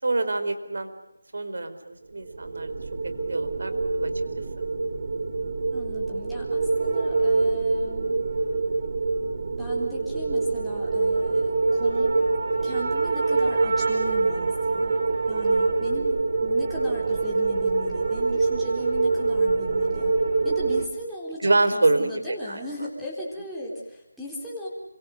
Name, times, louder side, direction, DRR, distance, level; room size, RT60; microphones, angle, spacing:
voice 1, 0.0-0.9 1.3-2.7 3.2-4.1 15.8-15.9 21.4-22.6, right 2 dB, 60° right, 10 dB, 4.6 m, -26 dB
sound 1, 2.3-20.9, right 3 dB, 40° right, 2.8 m, -25 dB
voice 2, 5.7-8.2 9.6-12.1 12.6-14.9 15.3-20.1 20.4-24.7, equal, ahead, -7 dB, 3.8 m, -38 dB
29.5 x 24.5 x 6.6 m, 0.91 s
figure-of-eight pair, 175°, 0 cm